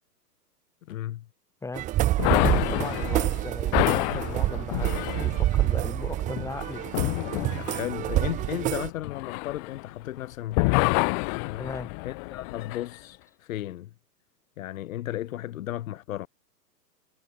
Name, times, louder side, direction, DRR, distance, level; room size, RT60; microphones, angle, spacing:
voice 1, 0.9-1.3 7.5-11.0 11.4-11.7 12.0-13.9 14.6-16.3, left 13 dB, 55° left, 1.6 m, -35 dB
sound 1, 1.7-8.9, right 15 dB, 15° right, 0.9 m, -27 dB
sound 2, 2.2-10.2 10.5-12.9, left 39 dB, 30° left, 1.1 m, -28 dB
voice 2, 2.2-6.8 11.6-11.9, left 3 dB, 5° left, 3.8 m, -37 dB
hypercardioid pair, 140°, 49 cm